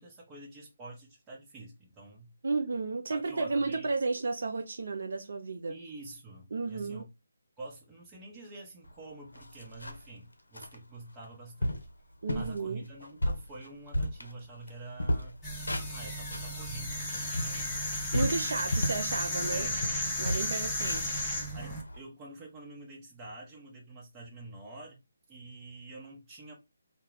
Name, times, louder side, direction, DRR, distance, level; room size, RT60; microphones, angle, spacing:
voice 1, 0.0-2.3 3.1-3.9 5.7-7.0 7.6-11.9 12.3-15.4 15.9-17.8 19.4-19.8 21.5-25.0 25.3-26.5, right 2 dB, 15° right, 0.9 m, -47 dB
voice 2, 2.4-5.7 6.5-7.0 12.2-12.9 18.1-19.7 20.2-21.2, right 3 dB, 60° right, 0.4 m, -32 dB
sound 1, 8.9-9.0 9.3-10.1 10.5-10.8 11.2-11.3 11.6-11.9 12.3-12.6 13.0-14.7 15.0-16.5 17.0-19.1 19.5-19.6 19.8-22.0, equal, 85° left, 0.5 m, -33 dB
sound 2, 15.4-21.8, left 1 dB, 15° left, 0.7 m, -34 dB
2.3 x 2.2 x 3.3 m
figure-of-eight pair, 150°, 0 cm